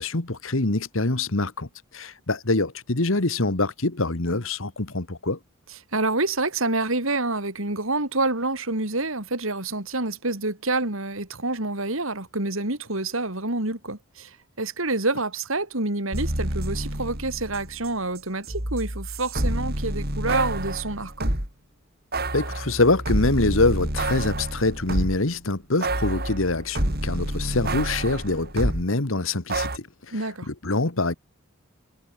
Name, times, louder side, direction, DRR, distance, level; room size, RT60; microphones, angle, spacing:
voice 1, 0.0-1.7 1.9-5.4 22.3-31.1, left 2 dB, 65° left, 1.7 m, -25 dB
voice 2, 5.9-21.3 30.1-30.5, right 2 dB, 65° right, 4.0 m, -27 dB
sound 1, 16.1-17.9 18.2-21.5 22.1-25.3 25.8-28.8 29.5-29.8, right 1 dB, 45° right, 5.5 m, -28 dB
head